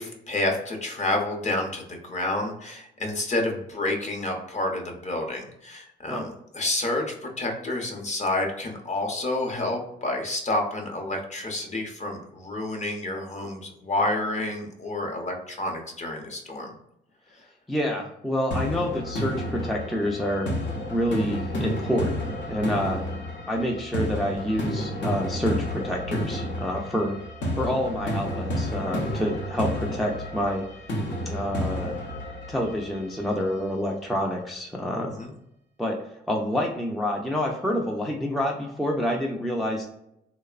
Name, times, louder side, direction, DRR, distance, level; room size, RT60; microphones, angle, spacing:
voice 1, 0.0-16.7 35.2-35.3, left 2 dB, 35° left, 2 dB, 0.7 m, -29 dB
voice 2, 17.7-20.5 20.9-23.0 23.5-27.2 27.5-30.6 31.3-32.0 32.5-35.1 35.8-36.0 36.3-39.9, equal, ahead, 0 dB, 0.4 m, -27 dB
sound 1, 18.5-33.5, equal, 70° left, 0.7 m, -31 dB
3.0 x 2.0 x 2.3 m, 0.78 s
cardioid pair, 90°, 20 cm